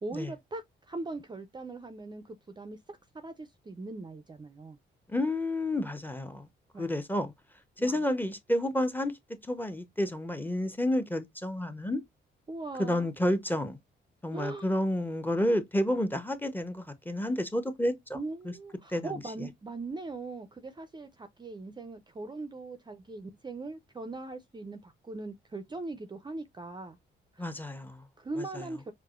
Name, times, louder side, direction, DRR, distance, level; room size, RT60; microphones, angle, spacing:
voice 1, 0.0-4.8 6.7-6.9 7.8-8.0 12.5-13.1 14.3-14.7 18.1-27.0 27.4-27.5 28.2-28.9, right 3 dB, 20° right, 0.5 m, -40 dB
voice 2, 5.1-6.5 6.8-7.3 7.8-9.1 9.5-12.0 12.8-13.8 14.2-18.2 18.4-18.5 18.9-19.5 27.4-28.0 28.4-28.7, left 1 dB, 10° left, 0.7 m, -30 dB
4.6 x 2.1 x 2.3 m
cardioid pair, 85°, 20 cm